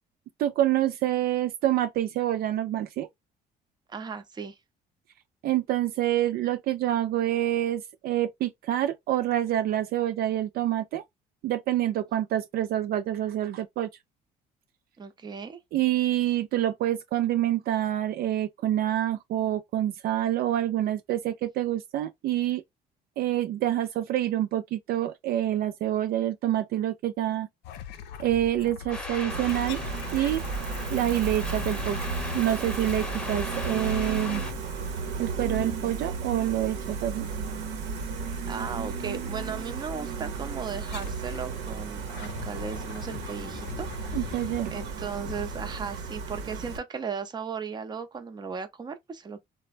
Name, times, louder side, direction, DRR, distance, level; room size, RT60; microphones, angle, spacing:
voice 1, 0.4-3.1 5.4-11.0 11.4-13.9 15.7-22.6 23.2-27.5 28.2-29.8 30.1-30.4 30.9-34.4 35.2-37.3 44.1-44.8, right 12 dB, 65° right, 0.4 m, -27 dB
voice 2, 3.9-4.6 15.0-15.6 38.5-44.4 44.7-49.5, right 6 dB, 25° right, 0.6 m, -36 dB
sound 1, 27.6-35.1 35.5-36.3 38.0-38.4 39.4-39.5 40.7-41.5 41.9-46.3, left 9 dB, 85° left, 0.5 m, -42 dB
sound 2, 28.9-34.5, left 1 dB, 5° left, 0.9 m, -38 dB
Gull seagull, 29.3-46.8, right 5 dB, 85° right, 0.9 m, -34 dB
3.2 x 2.1 x 2.4 m
cardioid pair, 110°, 17 cm